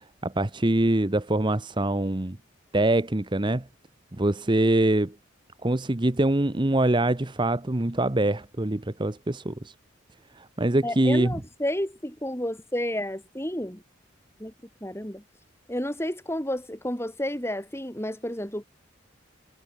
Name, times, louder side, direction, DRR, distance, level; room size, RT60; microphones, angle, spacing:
voice 1, 0.2-2.4 2.7-3.7 4.1-5.1 5.6-9.7 10.3-11.3, right 1 dB, 25° right, 0.9 m, -24 dB
voice 2, 10.8-13.8 14.4-14.5 14.8-15.2 15.7-18.6, left 1 dB, 15° left, 5.1 m, -31 dB
head